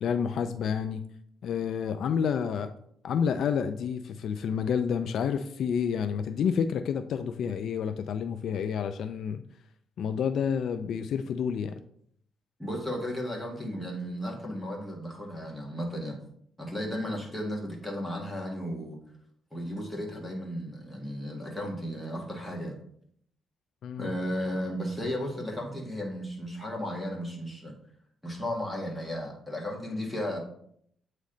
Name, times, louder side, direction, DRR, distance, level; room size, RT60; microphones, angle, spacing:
voice 1, 0.0-1.0 1.4-2.7 3.0-9.4 10.0-11.8 23.8-24.1, left 7 dB, 65° left, 9 dB, 0.3 m, -29 dB
voice 2, 12.6-16.2 16.6-19.0 19.5-22.8 24.0-27.7 28.2-30.4, equal, 5° left, -2 dB, 1.6 m, -34 dB
8.3 x 3.2 x 3.8 m, 0.67 s
cardioid pair, 115°, 0 cm